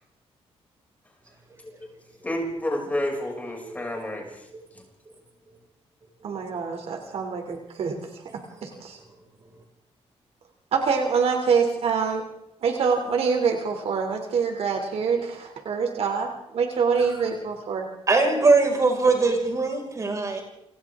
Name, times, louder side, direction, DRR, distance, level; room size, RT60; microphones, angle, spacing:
voice 1, 2.2-4.4, left 1 dB, 15° left, -1 dB, 6.5 m, -29 dB
voice 2, 6.2-8.1 8.3-9.0 10.7-12.2 12.6-17.9, right 5 dB, 65° right, 3 dB, 3.1 m, -25 dB
voice 3, 18.1-20.4, right 3 dB, 30° right, 1 dB, 5.6 m, -21 dB
29.0 x 26.5 x 3.7 m, 0.83 s
wide cardioid pair, 150°, 11 cm